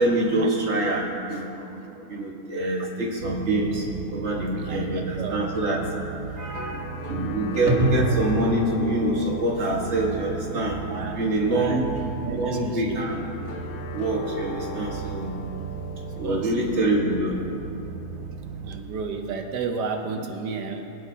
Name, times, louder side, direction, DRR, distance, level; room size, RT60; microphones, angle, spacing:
voice 1, 0.0-1.5 1.9-3.9 4.1-5.8 6.4-11.9 12.3-13.3 13.9-15.3 15.7-17.4, right 1 dB, 45° right, -2 dB, 1.8 m, -25 dB
sound 1, 3.2-18.8, right 6 dB, 65° right, 0.9 m, -37 dB
voice 2, 4.6-5.4 10.9-11.2 11.4-11.9 12.2-13.0 16.2-16.5 18.6-20.8, right 5 dB, 90° right, 4 dB, 1.4 m, -32 dB
sound 2, 5.2-16.7, left 4 dB, 85° left, 1.5 m, -39 dB
22.0 x 9.5 x 2.8 m, 2.8 s
omnidirectional pair, 1.7 m